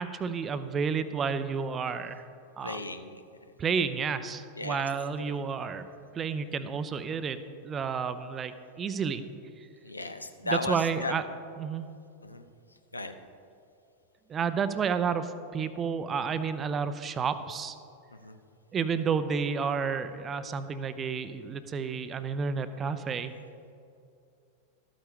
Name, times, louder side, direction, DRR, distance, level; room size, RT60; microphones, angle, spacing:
voice 1, 0.0-2.2 2.6-2.8 3.6-5.9 6.1-9.2 9.6-9.7 10.4-11.2 11.6-11.9 14.3-17.8 18.7-23.3, right 6 dB, 25° right, 12 dB, 0.5 m, -31 dB
voice 2, 2.6-3.2 4.6-4.9 5.3-5.4 9.8-11.1 12.2-12.4 12.9-13.2 18.1-18.4, left 3 dB, 80° left, 8 dB, 0.6 m, -35 dB
13.0 x 8.7 x 3.6 m, 2.5 s
figure-of-eight pair, 90°, 0 cm